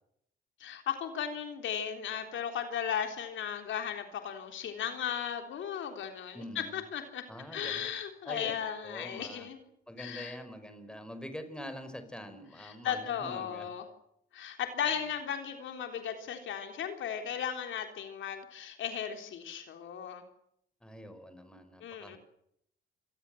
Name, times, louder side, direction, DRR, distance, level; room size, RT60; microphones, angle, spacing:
voice 1, 0.6-7.3 7.5-9.6 10.0-10.4 12.6-13.8 14.3-20.2 21.8-22.2, left 8 dB, 75° left, 5 dB, 3.6 m, -36 dB
voice 2, 6.3-6.8 7.3-7.9 8.2-8.6 8.8-9.5 9.9-13.7 20.8-22.2, equal, 5° left, 9 dB, 5.1 m, -44 dB
28.0 x 21.5 x 7.8 m, 0.75 s
cardioid pair, 90°, 20 cm